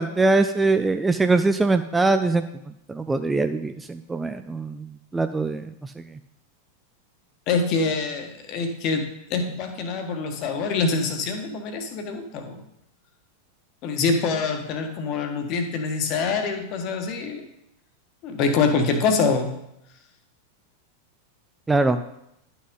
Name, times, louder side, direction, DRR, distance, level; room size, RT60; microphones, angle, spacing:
voice 1, 0.0-2.4 2.9-6.0 21.7-22.0, right 3 dB, 10° right, 9 dB, 0.4 m, -22 dB
voice 2, 7.5-9.0 9.3-12.6 13.8-17.5 18.2-19.5, left 4 dB, 40° left, 6 dB, 1.3 m, -25 dB
10.5 x 6.2 x 3.8 m, 0.80 s
figure-of-eight pair, 90°, 0 cm